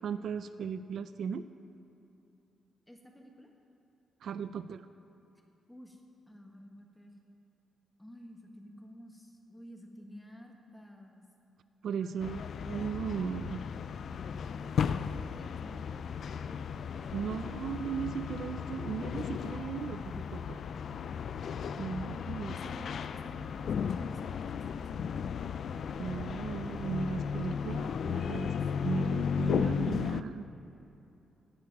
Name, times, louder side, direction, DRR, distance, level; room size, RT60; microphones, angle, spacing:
voice 1, 0.0-1.5 4.2-4.9 11.8-13.6 17.1-20.6 21.8-22.6 26.0-28.5 28.8-30.4, right 6 dB, 65° right, 12 dB, 0.4 m, -37 dB
voice 2, 2.9-3.5 5.7-6.0 6.3-7.1 8.0-11.3 12.0-12.4 14.0-17.4 22.4-25.6 27.5-29.1, left 1 dB, 5° left, 1 dB, 1.4 m, -52 dB
sound 1, 12.2-30.2, left 7 dB, 60° left, 0.4 m, -35 dB
16.5 x 9.6 x 4.7 m, 2.8 s
cardioid pair, 130°, 0 cm